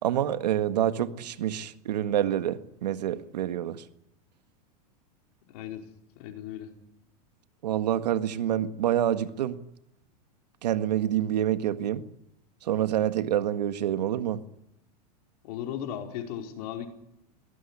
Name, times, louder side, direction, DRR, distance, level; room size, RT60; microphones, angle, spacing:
voice 1, 0.0-3.8 7.6-9.6 10.6-12.0 12.6-14.4, right 11 dB, 80° right, 1.8 m, -27 dB
voice 2, 5.5-5.9 6.2-6.7 15.4-16.9, left 10 dB, 65° left, 4.8 m, -36 dB
22.5 x 18.5 x 9.9 m
hypercardioid pair, 110°, 21 cm